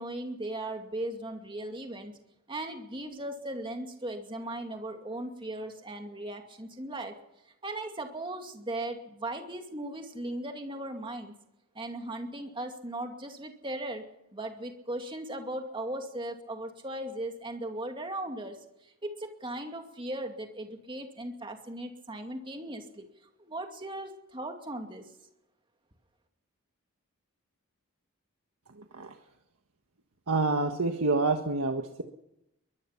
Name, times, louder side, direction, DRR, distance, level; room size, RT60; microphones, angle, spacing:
voice 1, 0.0-2.1 2.5-7.1 7.6-11.3 11.7-14.0 14.3-23.1 23.4-25.0, right 1 dB, 20° right, 4 dB, 2.4 m, -38 dB
voice 2, 28.7-29.1 30.3-32.0, right 3 dB, 85° right, 4 dB, 1.5 m, -28 dB
22.5 x 20.5 x 5.9 m, 0.85 s
head